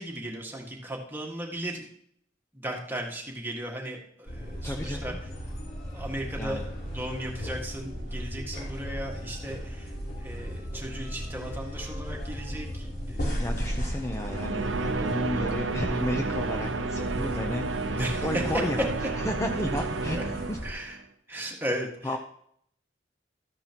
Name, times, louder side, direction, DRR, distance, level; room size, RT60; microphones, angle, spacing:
voice 1, 0.0-1.9 2.5-5.1 5.9-6.7 6.9-9.9 10.2-13.3 18.0-18.2 20.2-20.3 20.6-20.9 21.3-22.2, right 1 dB, 10° right, 0 dB, 1.7 m, -36 dB
sound 1, 4.3-20.7, equal, 60° left, 3.3 m, -36 dB
voice 2, 4.6-5.2 6.3-6.6 13.4-20.6 22.0-22.2, left 1 dB, 15° left, 3 dB, 0.6 m, -33 dB
sound 2, 14.1-21.0, right 3 dB, 90° right, 0.7 m, -31 dB
13.5 x 9.9 x 3.0 m, 0.68 s
head